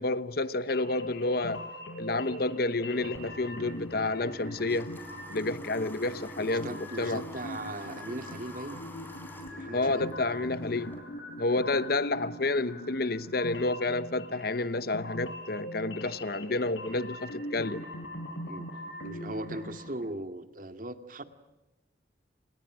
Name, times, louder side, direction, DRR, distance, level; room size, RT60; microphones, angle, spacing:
voice 1, 0.0-1.7 2.0-4.9 5.3-7.2 9.7-10.9 11.4-17.9, left 2 dB, 55° left, 1.0 m, -30 dB
sound 1, 0.7-19.9, left 1 dB, 80° left, 5.8 m, -42 dB
Water / Water tap faucet, 3.0-11.0, equal, 10° left, 4.7 m, -47 dB
voice 2, 6.4-8.8 9.5-10.1 18.4-18.7 19.0-21.2, right 1 dB, 45° right, 2.2 m, -39 dB
29.5 x 27.5 x 6.2 m
head